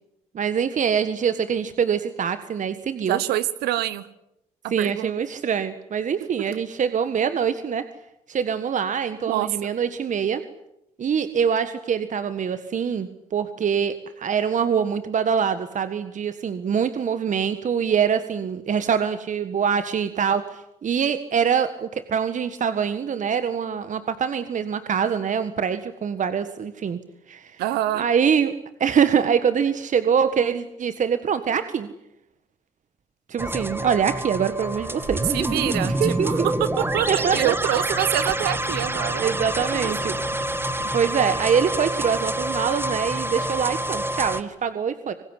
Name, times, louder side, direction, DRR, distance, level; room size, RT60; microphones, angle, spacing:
voice 1, 0.3-3.2 4.7-7.8 8.3-10.4 11.0-27.0 27.3-27.5 27.9-28.5 28.8-31.9 33.3-35.2 36.0-36.5 37.1-37.5 39.2-40.1 40.8-45.1, right 7 dB, 50° right, 11 dB, 1.6 m, -24 dB
voice 2, 3.1-4.1 4.8-5.1 9.2-9.7 27.6-28.0 35.3-36.4 36.8-39.3 39.7-39.9 40.4-40.6, right 13 dB, 75° right, 15 dB, 1.1 m, -26 dB
sound 1, 33.4-44.4, right 1 dB, 15° right, 2.1 m, -27 dB
sound 2, 34.6-40.9, left 5 dB, 80° left, 7.4 m, -43 dB
25.0 x 20.0 x 9.8 m, 0.84 s
hypercardioid pair, 55°, 17 cm